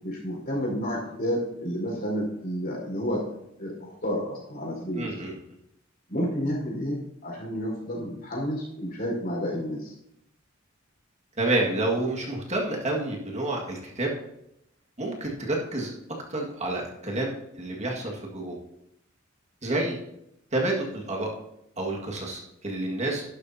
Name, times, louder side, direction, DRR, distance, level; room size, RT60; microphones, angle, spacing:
voice 1, 0.0-3.2 3.6-5.3 6.1-9.9, equal, 50° left, -2 dB, 4.7 m, -30 dB
voice 2, 4.9-5.3 11.4-14.1 15.0-15.9 16.3-18.6 19.6-20.0 20.5-21.3 21.8-23.2, right 2 dB, 35° right, -1 dB, 1.9 m, -29 dB
12.0 x 11.5 x 2.8 m, 0.80 s
head